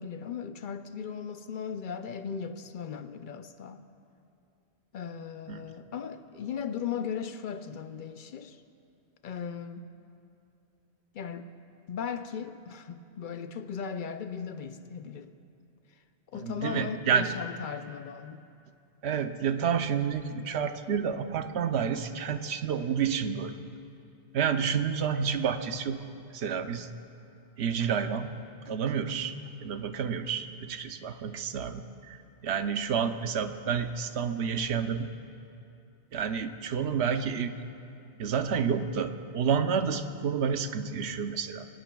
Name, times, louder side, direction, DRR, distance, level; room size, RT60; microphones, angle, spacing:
voice 1, 0.0-3.8 4.9-8.6 9.2-9.9 11.1-11.5 11.9-15.3 16.3-18.4, left 7 dB, 60° left, 0.6 m, -37 dB
voice 2, 16.4-17.3 19.0-23.5 24.3-26.0 26.3-26.9 27.6-28.3 28.7-29.3 29.6-35.1 36.1-37.5 38.2-41.7, right 7 dB, 85° right, 0.9 m, -29 dB
22.0 x 18.5 x 2.3 m
omnidirectional pair, 1.1 m